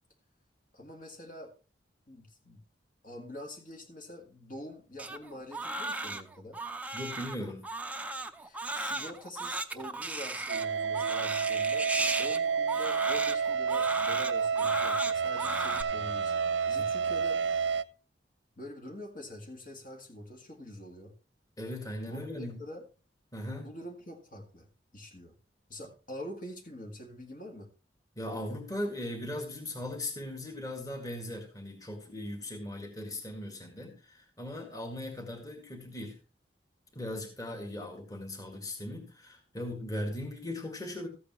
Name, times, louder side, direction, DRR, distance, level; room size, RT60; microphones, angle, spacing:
voice 1, 0.7-1.5 2.1-2.6 3.0-6.6 8.4-11.9 12.2-17.4 18.6-21.1 22.1-22.8 23.6-24.7 24.9-25.3 25.7-27.7, left 1 dB, 50° left, 2 dB, 1.9 m, -45 dB
Crying sobbing, 5.0-15.8, right 2 dB, 10° right, 0.6 m, -35 dB
voice 2, 6.9-7.6 16.8-16.9 21.6-22.6 23.3-23.7 28.2-36.2 36.9-41.1, left 1 dB, 20° left, 3 dB, 1.9 m, -38 dB
sound 1, 10.5-17.8, right 6 dB, 80° right, 0.6 m, -30 dB
14.0 x 8.4 x 3.1 m, 0.32 s
head